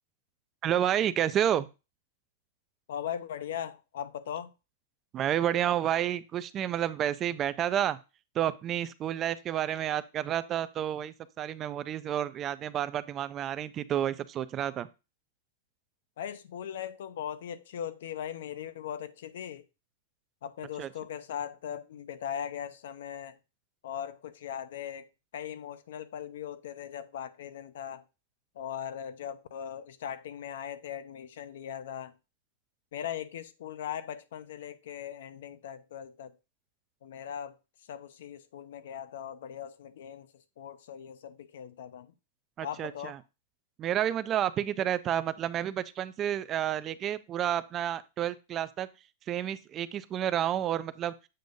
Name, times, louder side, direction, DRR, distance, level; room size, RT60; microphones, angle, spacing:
voice 1, 0.6-1.7 5.1-8.0 8.3-14.9 20.8-20.9 42.6-43.2 43.8-48.9 49.3-51.1, right 10 dB, 25° right, 0.3 m, -30 dB
voice 2, 2.9-4.5 16.2-19.6 20.4-23.4 23.8-28.0 28.6-32.1 32.9-36.3 37.0-37.6 37.9-42.1 42.6-43.2, left 9 dB, 70° left, 0.6 m, -39 dB
7.7 x 2.6 x 5.2 m
supercardioid pair, 160°, 0 cm